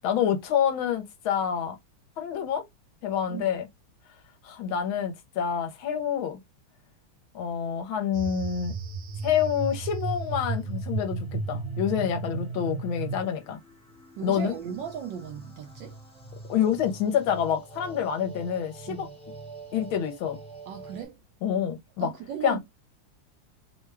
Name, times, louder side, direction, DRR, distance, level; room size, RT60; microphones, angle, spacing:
voice 1, 0.0-1.8 2.2-2.6 3.0-3.7 4.4-6.4 7.3-8.7 9.2-13.6 14.2-14.5 16.5-19.1 19.7-20.4 21.4-22.1 22.4-22.6, left 8 dB, 75° left, 1.4 m, -27 dB
sound 1, 8.1-13.2, right 4 dB, 45° right, 1.0 m, -33 dB
sound 2, 9.7-21.1, right 3 dB, 5° left, 0.5 m, -47 dB
voice 2, 14.2-16.0 18.9-19.2 20.7-21.2 22.0-22.6, right 8 dB, 75° right, 1.1 m, -36 dB
3.5 x 2.2 x 3.2 m
omnidirectional pair, 2.4 m